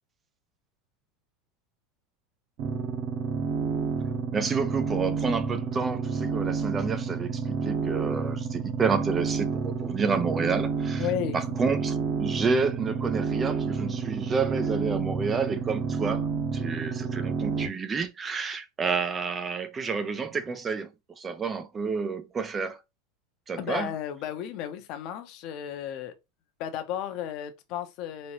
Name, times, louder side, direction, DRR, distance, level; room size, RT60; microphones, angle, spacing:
sound 1, 2.6-17.7, right 5 dB, 40° right, 0.9 m, -29 dB
voice 1, 4.3-11.1 11.3-16.3 16.5-20.9 21.2-22.8 23.5-23.9, right 5 dB, 15° right, 0.3 m, -30 dB
voice 2, 11.0-11.4 17.1-17.2 23.6-26.1 26.6-28.3, left 10 dB, 40° left, 0.7 m, -33 dB
4.2 x 2.8 x 2.9 m
supercardioid pair, 160°, 0 cm